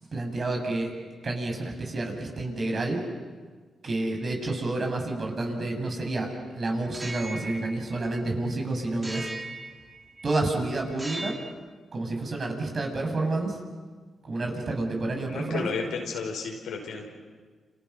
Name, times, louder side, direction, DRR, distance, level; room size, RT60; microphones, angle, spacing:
voice 1, 0.1-0.9 1.2-3.0 3.8-6.3 6.5-9.3 10.2-11.4 11.9-13.6 14.2-15.7, right 2 dB, 45° right, 2 dB, 6.5 m, -29 dB
sound 1, 6.9-8.5 9.0-10.4 10.9-11.6, right 2 dB, 20° right, 2.5 m, -39 dB
voice 2, 15.3-17.1, left 5 dB, 90° left, 1 dB, 5.5 m, -33 dB
29.5 x 29.0 x 5.8 m, 1.5 s
cardioid pair, 85°, 0 cm